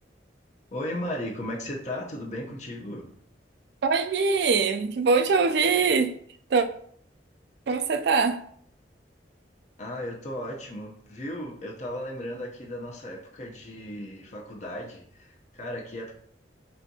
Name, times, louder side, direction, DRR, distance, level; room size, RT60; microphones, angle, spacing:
voice 1, 0.7-3.1 9.8-16.1, left 1 dB, 40° left, 0.7 m, -36 dB
voice 2, 3.8-6.2 6.5-6.7 7.7-8.4, right 4 dB, 65° right, 0.4 m, -23 dB
4.3 x 3.4 x 2.7 m
head